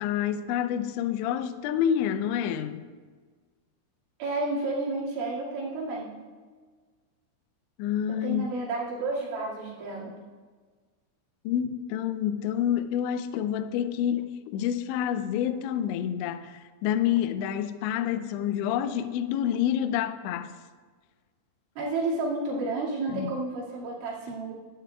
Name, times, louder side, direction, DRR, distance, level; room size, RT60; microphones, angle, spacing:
voice 1, 0.0-2.8 7.8-8.5 11.5-20.6 23.1-23.3, left 10 dB, 90° left, 2.6 m, -28 dB
voice 2, 4.2-6.1 8.1-10.1 21.8-24.5, right 2 dB, 70° right, 4.5 m, -31 dB
16.0 x 12.0 x 2.3 m
omnidirectional pair, 5.8 m